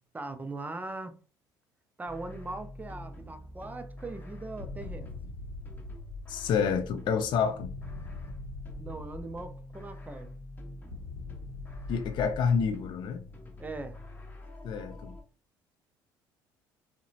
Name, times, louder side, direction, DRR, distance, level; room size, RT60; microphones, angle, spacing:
voice 1, 0.1-1.1 2.0-5.1 8.8-10.3 13.6-14.0, right 2 dB, 15° right, 0.5 m, -40 dB
sound 1, 2.1-15.2, left 1 dB, 15° left, 0.8 m, -46 dB
sound 2, 4.6-6.9 7.6-9.9 10.9-13.2, left 3 dB, 75° left, 0.7 m, -43 dB
voice 2, 6.3-7.7 11.9-13.2 14.6-15.1, left 6 dB, 50° left, 0.4 m, -28 dB
2.7 x 2.1 x 2.6 m
hypercardioid pair, 60°, 11 cm